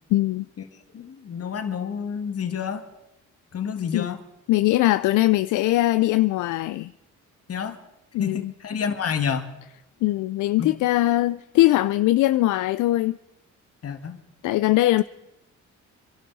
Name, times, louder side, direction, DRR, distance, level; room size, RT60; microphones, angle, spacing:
voice 1, 0.1-0.5 3.9-4.1 4.5-6.9 8.1-8.5 10.0-13.2 14.4-15.0, left 16 dB, 80° left, 0.5 m, -21 dB
voice 2, 0.9-2.8 3.5-4.2 7.5-7.8 8.2-9.5 10.6-10.8 13.8-14.2, left 7 dB, 50° left, 1.9 m, -29 dB
27.0 x 12.0 x 4.1 m
cardioid pair, 90°, 30 cm